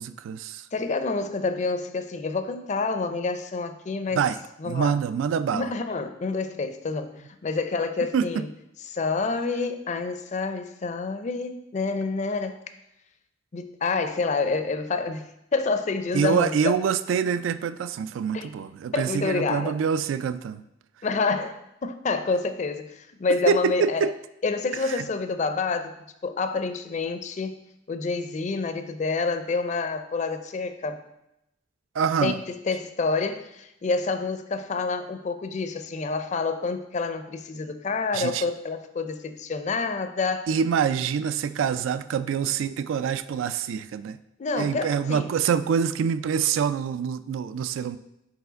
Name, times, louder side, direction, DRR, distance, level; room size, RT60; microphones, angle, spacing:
voice 1, 0.0-0.7 4.1-4.4 4.7-5.7 8.1-8.3 16.1-20.6 23.5-24.1 24.8-25.0 31.9-32.4 38.1-38.4 40.5-44.2 44.6-48.0, right 7 dB, 85° right, 13 dB, 0.3 m, -25 dB
voice 2, 0.7-4.2 4.6-4.9 5.5-7.2 7.4-8.5 8.9-12.6 13.5-16.7 18.3-18.5 18.9-19.8 21.0-24.1 24.4-25.9 26.2-27.6 27.9-31.0 32.2-40.5 44.4-45.3, left 4 dB, 40° left, 9 dB, 0.4 m, -28 dB
4.7 x 4.2 x 5.1 m, 0.84 s
head